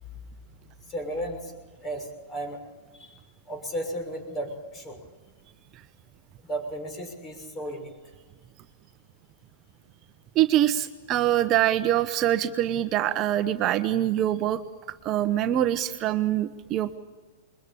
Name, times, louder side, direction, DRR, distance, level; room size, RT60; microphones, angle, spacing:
voice 1, 0.8-2.6 2.9-5.0 6.4-7.9, right 1 dB, 25° left, 5 dB, 6.1 m, -35 dB
voice 2, 10.3-14.6 15.0-17.0, right 12 dB, 35° right, 10 dB, 1.0 m, -24 dB
22.0 x 21.5 x 8.7 m, 1.3 s
hypercardioid pair, 125°, 0 cm